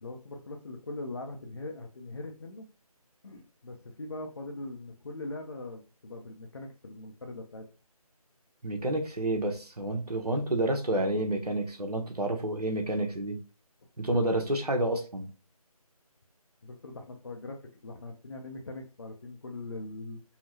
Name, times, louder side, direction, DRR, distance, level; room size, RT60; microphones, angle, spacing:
voice 1, 0.0-2.7 3.2-7.6 16.6-20.2, left 2 dB, 45° left, 0.6 m, -41 dB
voice 2, 8.6-13.4 14.0-15.3, right 1 dB, 85° right, 1.1 m, -29 dB
5.6 x 2.2 x 2.7 m
figure-of-eight pair, 160°, 19 cm